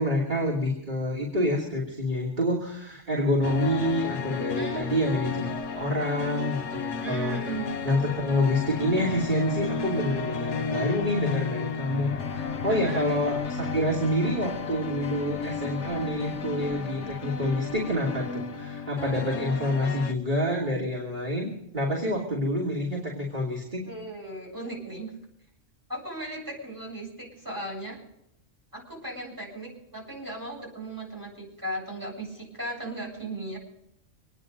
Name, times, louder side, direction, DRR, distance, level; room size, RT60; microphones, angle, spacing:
voice 1, 0.0-7.4 7.8-23.9, left 1 dB, 40° right, -4 dB, 3.1 m, -27 dB
sound 1, 3.4-20.1, left 5 dB, 70° left, 1.3 m, -33 dB
voice 2, 7.0-7.6 12.7-13.3 23.9-25.1 25.9-28.0 28.7-33.6, right 1 dB, 15° right, -3 dB, 7.8 m, -37 dB
26.5 x 10.0 x 5.3 m, 0.81 s
omnidirectional pair, 1.3 m